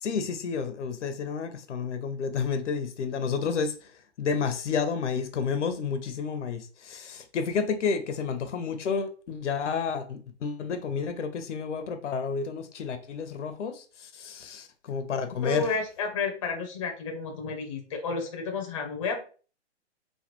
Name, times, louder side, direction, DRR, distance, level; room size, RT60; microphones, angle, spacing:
voice 1, 0.0-3.7 4.2-15.7, left 5 dB, 85° left, 0.7 m, -30 dB
voice 2, 15.4-19.2, left 4 dB, 30° left, 0.5 m, -31 dB
3.2 x 2.2 x 2.9 m
hypercardioid pair, 160°, 35 cm